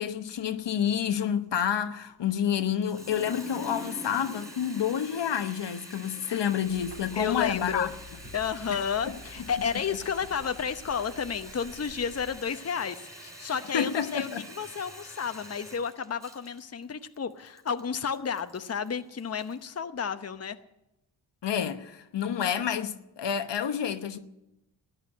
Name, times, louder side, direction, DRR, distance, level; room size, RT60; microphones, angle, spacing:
voice 1, 0.0-7.9 8.7-9.2 13.7-14.4 21.4-24.2, left 8 dB, 65° left, 1.1 m, -29 dB
Water tap faucet, 2.7-19.6, equal, 5° right, 3.9 m, -46 dB
sound 1, 6.6-12.4, left 3 dB, 75° right, 5.2 m, -49 dB
voice 2, 7.2-7.9 8.3-14.3 14.6-20.6, left 7 dB, 35° left, 0.9 m, -32 dB
13.5 x 9.7 x 9.9 m
cardioid pair, 50°, 45 cm